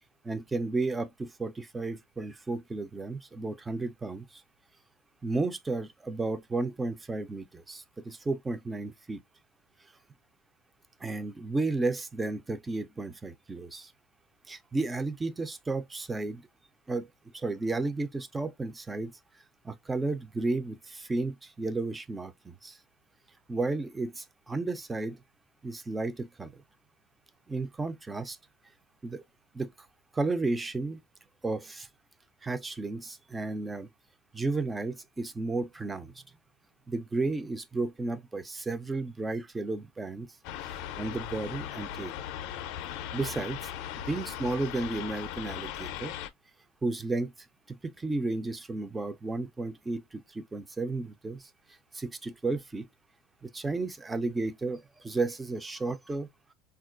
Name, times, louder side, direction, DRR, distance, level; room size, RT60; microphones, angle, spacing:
voice 1, 0.3-4.4 5.2-9.2 11.0-13.9 14.5-16.4 16.9-17.1 17.3-19.1 19.6-22.8 23.5-25.2 25.6-26.6 27.5-28.4 29.0-29.2 29.5-29.7 30.1-31.0 31.4-31.9 32.4-33.9 34.3-36.2 36.9-40.3 40.7-42.1 43.1-43.7 44.1-46.1 46.8-47.3 47.7-51.5 51.9-52.9 53.4-56.3, right 3 dB, 10° right, 0.3 m, -33 dB
sound 1, 40.4-46.3, left 10 dB, 60° left, 0.4 m, -38 dB
4.2 x 2.3 x 2.3 m
cardioid pair, 155°, 0 cm